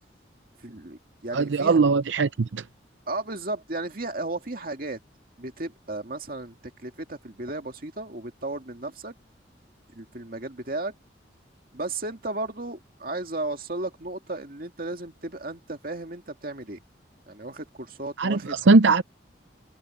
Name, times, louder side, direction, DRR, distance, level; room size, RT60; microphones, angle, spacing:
voice 1, 0.6-1.8 3.1-5.0 5.4-6.6 6.8-9.1 10.0-10.9 11.7-16.8 17.3-18.6, right 2 dB, 50° right, 2.2 m, -34 dB
voice 2, 1.3-2.6 18.2-19.0, right 4 dB, 85° right, 0.6 m, -20 dB
head